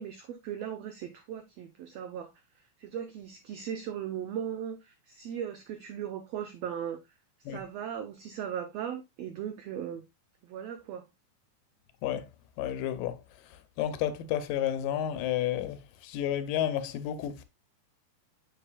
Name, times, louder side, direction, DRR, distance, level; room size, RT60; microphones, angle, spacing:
voice 1, 0.0-2.3 2.8-7.0 7.5-10.0 10.4-11.1, right 9 dB, 80° right, 1.4 m, -38 dB
voice 2, 12.6-13.2 13.8-17.4, left 11 dB, 85° left, 2.5 m, -31 dB
7.0 x 6.7 x 2.3 m
omnidirectional pair, 3.8 m